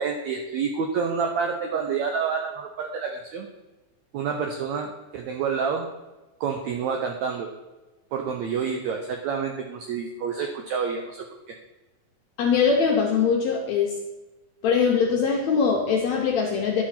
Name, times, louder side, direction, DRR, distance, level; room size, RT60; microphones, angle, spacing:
voice 1, 0.0-3.5 4.1-5.9 6.4-7.5 8.1-11.5, right 6 dB, 80° right, 3 dB, 1.6 m, -28 dB
voice 2, 12.4-13.9 14.6-16.8, left 6 dB, 75° left, 0 dB, 1.7 m, -22 dB
11.5 x 4.8 x 5.8 m, 1.1 s
omnidirectional pair, 4.1 m